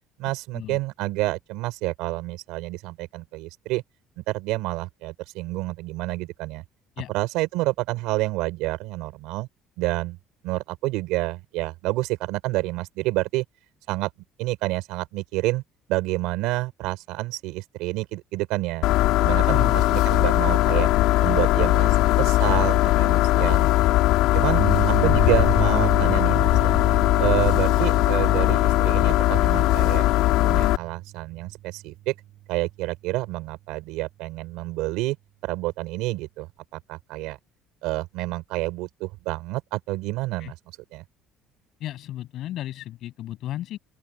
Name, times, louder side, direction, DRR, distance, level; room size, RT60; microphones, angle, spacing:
voice 1, 0.2-3.8 4.2-6.6 7.1-9.5 9.8-10.2 10.4-13.4 13.9-14.1 14.4-15.6 15.9-18.9 19.2-20.9 21.2-23.9 24.3-24.6 24.9-26.7 27.2-30.1 30.4-32.1 32.5-35.2 35.4-37.4 37.8-40.6 40.9-41.0, right 20 dB, 85° right, 4.4 m, -28 dB
sound 1, 18.8-30.8, left 16 dB, 75° left, 2.0 m, -19 dB
sound 2, 24.6-32.3, right 14 dB, 55° right, 5.3 m, -33 dB
voice 2, 41.8-43.8, left 13 dB, 50° left, 7.7 m, -34 dB
open air
cardioid pair, 175°, 0 cm